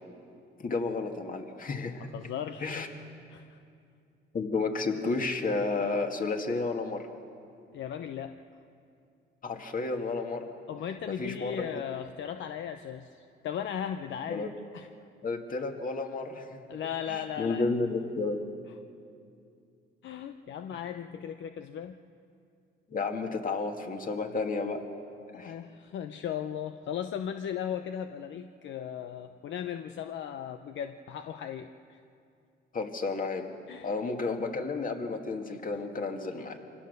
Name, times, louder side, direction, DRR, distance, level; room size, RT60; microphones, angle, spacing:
voice 1, 0.6-2.1 2.6-2.9 4.3-7.0 9.4-10.4 11.1-11.6 14.3-14.5 15.2-16.6 17.1-18.4 20.7-20.8 22.9-24.8 25.4-25.6 32.7-33.5 33.8-36.6, left 3 dB, 45° left, 4 dB, 2.2 m, -32 dB
voice 2, 2.1-2.7 3.3-3.6 7.7-8.4 10.7-14.9 16.7-17.7 20.0-22.0 25.3-32.0 33.7-33.9 35.7-35.8, left 9 dB, 70° left, 8 dB, 0.7 m, -37 dB
25.0 x 17.0 x 6.8 m, 2.5 s
cardioid pair, 90°, 20 cm